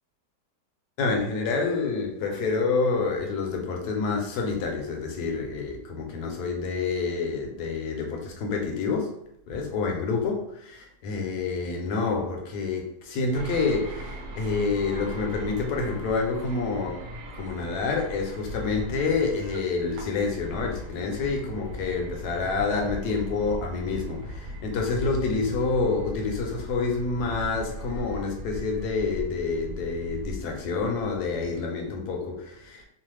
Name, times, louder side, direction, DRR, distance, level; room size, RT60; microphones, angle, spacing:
voice 1, 1.0-9.1 9.5-17.0 17.3-32.9, left 4 dB, 80° left, 1 dB, 1.2 m, -28 dB
sound 1, 13.3-31.6, left 1 dB, 80° right, 1.2 m, -38 dB
3.1 x 2.0 x 3.2 m, 0.78 s
omnidirectional pair, 1.7 m